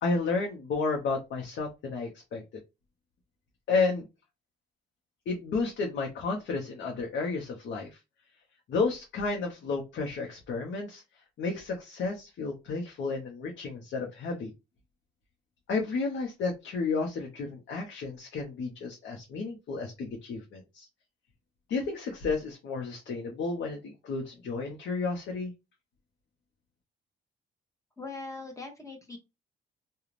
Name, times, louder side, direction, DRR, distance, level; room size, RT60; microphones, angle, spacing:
voice 1, 0.0-2.4 3.7-4.1 5.3-8.0 8.7-11.0 11.4-14.5 15.7-20.9 21.7-25.5, left 4 dB, 70° left, 1 dB, 0.9 m, -32 dB
voice 2, 28.0-29.2, left 3 dB, 15° left, 3 dB, 0.9 m, -41 dB
2.5 x 2.3 x 3.2 m, 0.24 s
cardioid pair, 90°, 20 cm